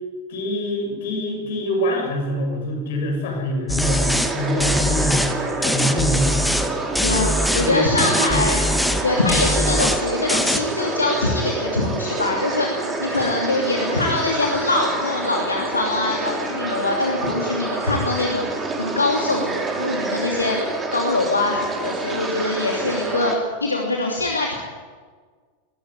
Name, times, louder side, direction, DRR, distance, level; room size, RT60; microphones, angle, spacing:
voice 1, 0.3-6.4 7.6-8.5 9.6-9.8, left 1 dB, 55° left, 2 dB, 7.3 m, -25 dB
sound 1, 3.7-4.3 4.6-5.3 5.6-6.7 6.9-7.7 8.0-9.0 9.3-10.0 10.3-10.6, equal, 5° left, 1.6 m, -22 dB
sound 2, 3.8-23.4, right 3 dB, 15° right, 4.2 m, -27 dB
voice 2, 7.0-8.6 9.0-24.5, left 2 dB, 80° left, 0 dB, 2.8 m, -23 dB
21.0 x 15.5 x 10.0 m, 1.5 s
figure-of-eight pair, 90°, 0 cm